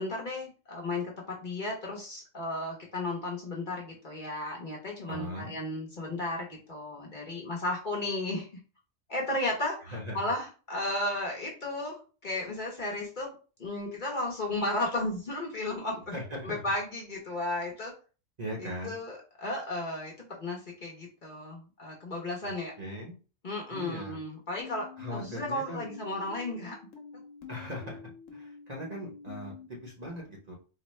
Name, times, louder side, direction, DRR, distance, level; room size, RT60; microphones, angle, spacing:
voice 1, 0.0-8.5 9.1-13.3 13.6-16.2 16.4-17.9 18.6-22.7 23.4-26.8, left 2 dB, 45° left, -2 dB, 0.9 m, -34 dB
voice 2, 5.1-5.5 9.9-10.2 16.1-16.6 18.4-19.0 22.4-22.5 22.8-23.2 23.7-24.2 25.0-25.8 27.5-30.5, equal, 35° right, -2 dB, 0.9 m, -39 dB
sound 1, 24.6-29.7, left 6 dB, 90° left, 1.1 m, -47 dB
4.1 x 2.1 x 3.1 m, 0.35 s
omnidirectional pair, 1.3 m